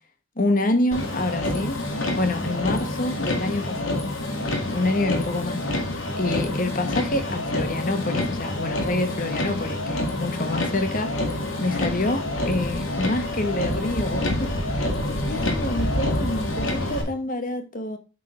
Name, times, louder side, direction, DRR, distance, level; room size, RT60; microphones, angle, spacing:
voice 1, 0.4-1.8 2.2-4.0 4.7-5.6 6.2-14.5 15.3-18.0, left 2 dB, 40° left, 1.1 m, -27 dB
Motor vehicle (road), 0.9-17.0, left 1 dB, 85° left, 1.9 m, -27 dB
7.9 x 3.7 x 4.8 m
head